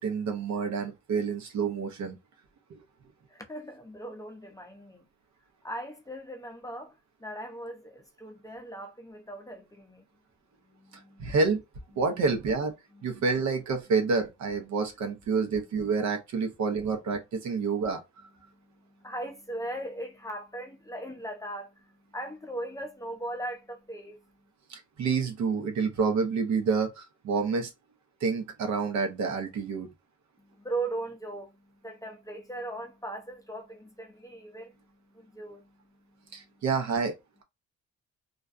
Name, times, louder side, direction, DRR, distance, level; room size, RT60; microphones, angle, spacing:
voice 1, 0.0-2.2 2.7-2.8 11.2-11.6 12.0-12.7 13.0-18.3 25.0-27.7 28.2-29.9 36.3-37.1, right 5 dB, 65° right, 0.8 m, -28 dB
voice 2, 3.3-5.1 5.6-6.9 7.2-10.0 10.6-11.4 12.9-13.3 18.4-24.3 30.4-36.6, right 1 dB, 10° left, 0.6 m, -39 dB
2.4 x 2.2 x 2.5 m
cardioid pair, 90°, 30 cm